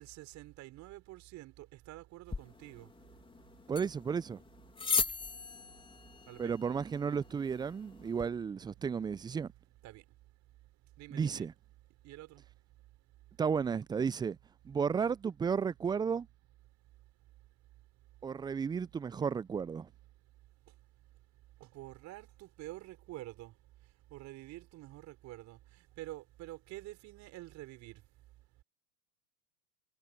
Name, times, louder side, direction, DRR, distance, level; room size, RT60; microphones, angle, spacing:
voice 1, 0.0-2.9 6.3-6.5 9.8-10.0 11.0-11.5 12.0-12.4 21.6-23.5 24.1-25.6 26.0-28.0, right 17 dB, 35° right, 4.9 m, -48 dB
sound 1, 2.3-8.3, left 4 dB, 10° left, 3.6 m, -39 dB
voice 2, 3.7-4.4 6.4-9.5 11.1-11.5 13.4-14.4 14.6-16.3 18.2-19.9, right 6 dB, 10° right, 0.6 m, -33 dB
figure-of-eight pair, 100°, 47 cm